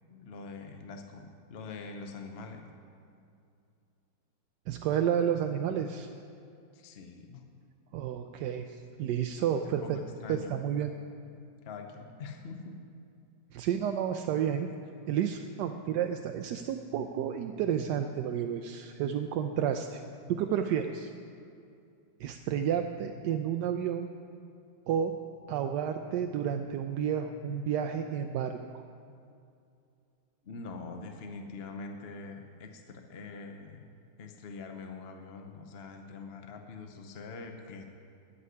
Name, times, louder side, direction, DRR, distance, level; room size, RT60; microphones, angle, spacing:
voice 1, 0.1-2.7 6.7-7.4 9.6-10.5 11.6-12.8 30.4-33.9 34.2-37.8, left 4 dB, 55° left, 4 dB, 0.7 m, -44 dB
voice 2, 4.7-6.1 7.9-10.0 10.3-10.9 13.5-14.7 15.1-20.0 20.3-21.1 22.2-24.1 24.9-25.1 25.5-28.6, right 9 dB, 75° right, 5 dB, 1.1 m, -31 dB
14.0 x 5.6 x 9.6 m, 2.5 s
omnidirectional pair, 2.1 m